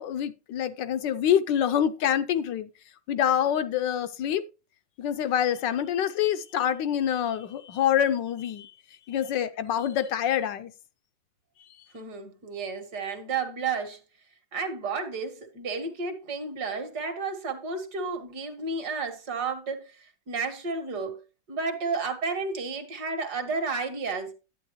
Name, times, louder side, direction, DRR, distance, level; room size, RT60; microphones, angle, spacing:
voice 1, 0.0-2.7 3.1-4.4 5.0-8.7 9.1-10.7, left 9 dB, 75° left, 1.3 m, -26 dB
voice 2, 11.9-14.0 14.5-21.2 21.5-24.3, right 4 dB, 60° right, 2.0 m, -32 dB
11.0 x 8.6 x 3.0 m
omnidirectional pair, 2.1 m